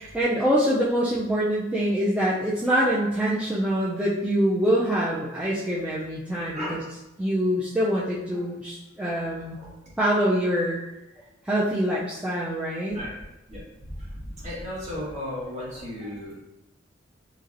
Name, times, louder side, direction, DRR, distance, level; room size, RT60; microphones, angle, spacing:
voice 1, 0.1-6.8 7.2-9.6 10.0-10.8 11.5-13.0, equal, 5° right, -8 dB, 0.3 m, -24 dB
voice 2, 6.5-6.8 7.8-8.5 9.5-9.9 12.9-16.4, left 1 dB, 35° right, -6 dB, 1.1 m, -36 dB
2.9 x 2.8 x 2.5 m, 0.95 s
head